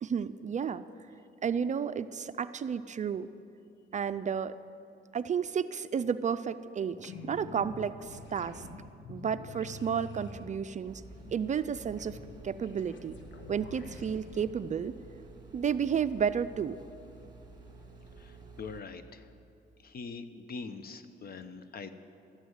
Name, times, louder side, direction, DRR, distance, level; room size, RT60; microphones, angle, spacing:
voice 1, 0.0-0.8 1.4-3.3 3.9-4.6 5.1-8.6 9.1-11.0 11.3-12.2 12.4-13.2 13.5-15.0 15.5-16.8, right 7 dB, 40° right, 12 dB, 0.4 m, -32 dB
sound 1, 7.0-14.5, left 2 dB, 65° left, 1.4 m, -47 dB
sound 2, 10.9-18.8, right 3 dB, 20° right, 2.2 m, -51 dB
voice 2, 18.2-19.3 19.8-21.9, left 4 dB, 50° left, 11 dB, 0.9 m, -43 dB
13.0 x 8.0 x 9.4 m, 2.6 s
cardioid pair, 90°, 20 cm